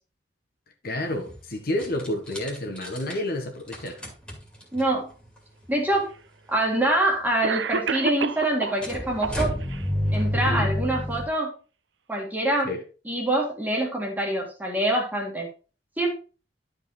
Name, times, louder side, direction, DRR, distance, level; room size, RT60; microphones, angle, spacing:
voice 1, 0.8-4.0 10.3-10.7 12.6-12.8, left 1 dB, 55° left, 1.6 m, -30 dB
sound 1, 1.0-1.4 1.8-3.1 3.7-4.9 5.7-5.8 5.9-6.0 8.8-11.3, equal, 5° left, 2.3 m, -29 dB
voice 2, 4.7-5.1 5.7-6.1 6.5-9.6 10.1-11.5 12.1-12.7 13.1-15.5 16.0-16.1, right 1 dB, 10° right, 2.0 m, -25 dB
Cough, 5.7-5.8 6.8-6.9 7.4-8.8 9.2-9.8, right 5 dB, 80° right, 0.7 m, -29 dB
11.5 x 4.8 x 4.0 m
head